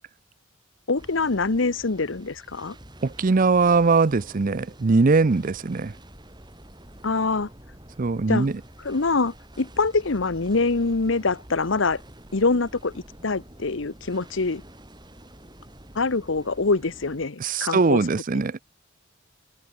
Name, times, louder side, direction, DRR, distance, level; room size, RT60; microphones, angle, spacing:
voice 1, 0.9-2.8 7.0-7.5 8.3-8.5 8.8-12.0 12.3-12.9 13.2-14.6 15.9-18.0, left 3 dB, 70° left, 1.0 m, -24 dB
sound 1, 1.0-17.3, right 1 dB, 20° right, 6.0 m, -47 dB
voice 2, 3.0-5.9 8.0-8.5 17.4-18.6, right 4 dB, 45° right, 0.5 m, -21 dB
head